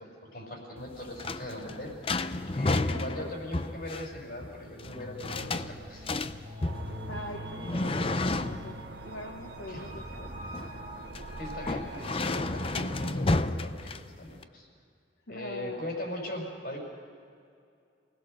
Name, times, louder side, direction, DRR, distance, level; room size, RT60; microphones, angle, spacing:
voice 1, 0.0-1.9 2.5-6.1 9.7-9.9 11.4-14.7 15.3-16.8, left 1 dB, 55° left, 0 dB, 5.7 m, -40 dB
sound 1, 0.8-14.4, left 2 dB, 30° left, 0.6 m, -32 dB
voice 2, 2.8-3.3 7.1-8.7 9.0-10.3 12.7-12.8 15.3-15.8, left 1 dB, 75° left, 3 dB, 1.3 m, -42 dB
sound 2, 4.7-13.0, equal, 25° right, 2.5 m, -44 dB
sound 3, 6.6-13.1, right 4 dB, 65° right, 0.9 m, -46 dB
29.0 x 19.0 x 6.5 m, 2.4 s
head